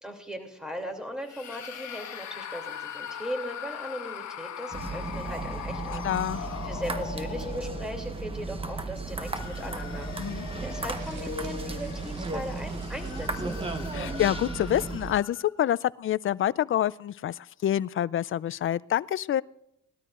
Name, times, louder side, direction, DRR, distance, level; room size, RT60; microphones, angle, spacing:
voice 1, 0.0-13.6, equal, ahead, 4 dB, 2.7 m, -38 dB
sound 1, 1.2-8.3 9.0-15.5, left 8 dB, 65° left, 1.3 m, -41 dB
sound 2, 4.7-15.2, right 3 dB, 20° right, 1.0 m, -35 dB
voice 2, 6.0-6.4 10.2-10.5 13.9-19.4, left 11 dB, 45° left, 20 dB, 0.4 m, -27 dB
sound 3, 10.9-14.1, right 6 dB, 90° right, 1.8 m, -53 dB
20.0 x 12.5 x 2.5 m, 0.82 s
cardioid pair, 90°, 30 cm